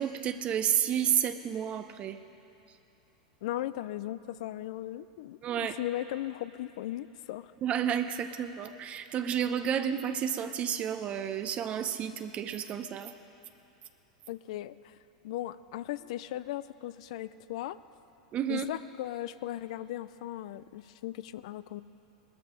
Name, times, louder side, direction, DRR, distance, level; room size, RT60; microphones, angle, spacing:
voice 1, 0.0-2.2 5.4-5.8 7.6-13.1 18.3-18.7, right 9 dB, 35° right, 9 dB, 0.7 m, -31 dB
voice 2, 3.4-7.5 14.3-15.0 15.2-17.8 18.5-21.8, left 14 dB, 65° left, 16 dB, 0.5 m, -37 dB
19.0 x 13.5 x 5.1 m, 2.8 s
hypercardioid pair, 100°, 4 cm